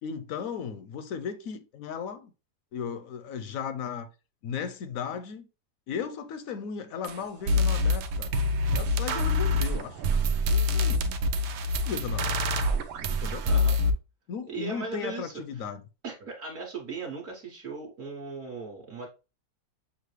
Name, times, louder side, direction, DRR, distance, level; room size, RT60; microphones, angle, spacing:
voice 1, 0.0-2.3 2.7-4.1 4.4-5.5 5.9-8.3 8.7-10.0 10.5-11.2 11.8-12.4 13.1-13.5 14.3-15.8, left 7 dB, 70° left, 0.8 m, -36 dB
sound 1, 7.0-7.1 7.5-13.9, left 2 dB, 85° right, 1.2 m, -25 dB
voice 2, 13.4-13.8 14.5-15.3 16.0-19.1, right 3 dB, 55° right, 1.3 m, -37 dB
6.5 x 2.5 x 3.1 m
omnidirectional pair, 1.7 m